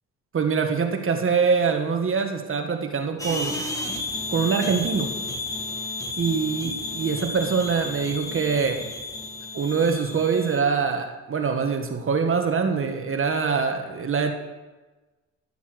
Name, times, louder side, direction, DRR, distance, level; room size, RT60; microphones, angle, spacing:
voice 1, 0.3-3.6 4.3-5.1 6.2-8.8 9.5-14.3, right 5 dB, 45° right, 5 dB, 1.6 m, -24 dB
sound 1, 3.2-10.6, left 2 dB, 10° left, 2.0 m, -32 dB
15.0 x 7.1 x 6.5 m, 1.2 s
cardioid pair, 90°, 30 cm